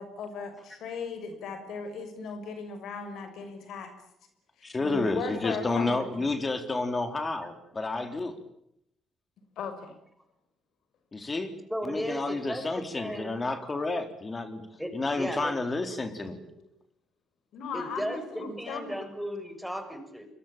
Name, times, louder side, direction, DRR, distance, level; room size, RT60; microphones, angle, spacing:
voice 1, 0.0-3.9 4.8-6.2 9.6-9.9 16.6-16.7 17.5-19.1, left 5 dB, 75° left, 8 dB, 6.0 m, -37 dB
voice 2, 4.6-8.3 11.1-11.5 11.8-14.6 14.9-16.4, left 3 dB, 30° left, 8 dB, 3.8 m, -30 dB
voice 3, 11.7-13.5 14.8-15.6 17.7-20.3, equal, ahead, 8 dB, 6.9 m, -36 dB
27.5 x 23.5 x 8.9 m, 0.77 s
cardioid pair, 90°, 0 cm